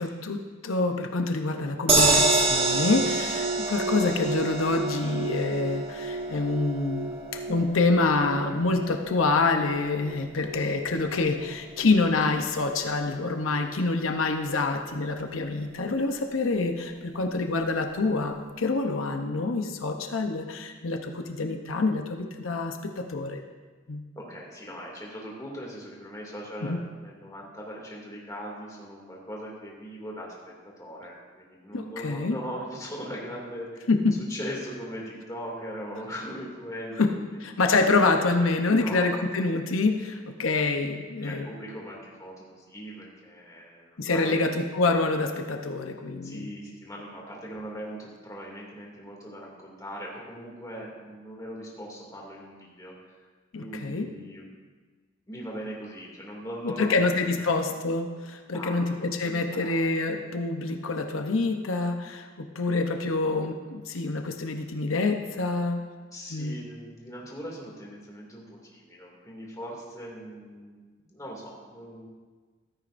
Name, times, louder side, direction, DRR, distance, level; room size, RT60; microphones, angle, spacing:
voice 1, 0.0-23.4 23.9-24.0 26.6-26.8 31.7-32.4 33.9-34.2 37.0-37.1 37.4-41.5 44.0-46.5 53.5-54.1 56.6-65.9 66.3-66.6, left 3 dB, 90° left, 4 dB, 0.8 m, -26 dB
sound 1, 1.9-14.1 14.5-14.6 14.9-15.0, right 3 dB, 30° right, 1.8 m, -29 dB
voice 2, 24.1-33.9 34.3-37.3 38.7-39.4 41.2-44.4 46.2-52.9 53.6-54.5 55.3-57.3 58.5-58.9 59.2-60.2 66.1-72.1, equal, 15° left, -3 dB, 2.4 m, -40 dB
15.0 x 13.0 x 2.6 m, 1.4 s
head